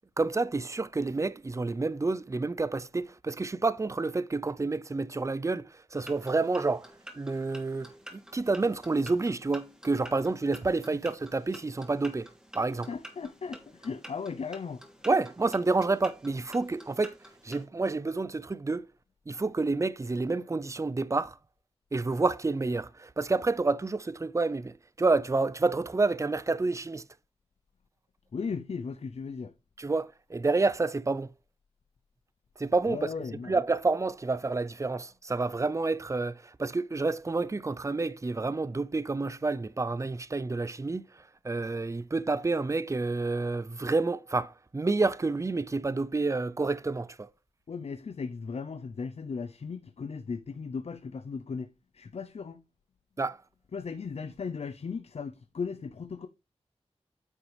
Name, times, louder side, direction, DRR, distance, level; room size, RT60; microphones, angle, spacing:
voice 1, 0.2-6.9 7.2-12.3 12.5-12.9 15.1-17.2 17.4-18.9 19.3-21.4 21.9-27.1 29.8-31.3 32.6-33.1 33.5-47.3 53.2-53.4, right 3 dB, 25° right, 0.5 m, -29 dB
sound 1, 5.9-17.7, equal, 5° right, 2.5 m, -50 dB
voice 2, 12.9-14.8 28.3-29.5 32.9-33.5 47.7-52.6 53.7-56.3, left 5 dB, 65° left, 0.6 m, -37 dB
9.3 x 5.8 x 3.3 m
wide cardioid pair, 70°, 11 cm